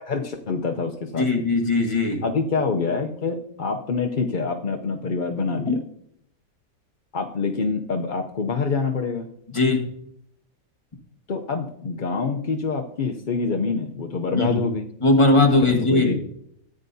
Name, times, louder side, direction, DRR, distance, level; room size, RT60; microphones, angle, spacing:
voice 1, 0.0-1.3 2.2-5.8 7.1-9.3 11.3-14.8 15.7-16.2, left 4 dB, 50° left, 3 dB, 0.5 m, -26 dB
voice 2, 1.2-2.2 5.7-5.8 9.5-9.8 14.3-14.6 15.0-16.2, left 2 dB, 20° left, 1 dB, 1.4 m, -19 dB
14.0 x 9.5 x 2.7 m, 0.71 s
omnidirectional pair, 1.7 m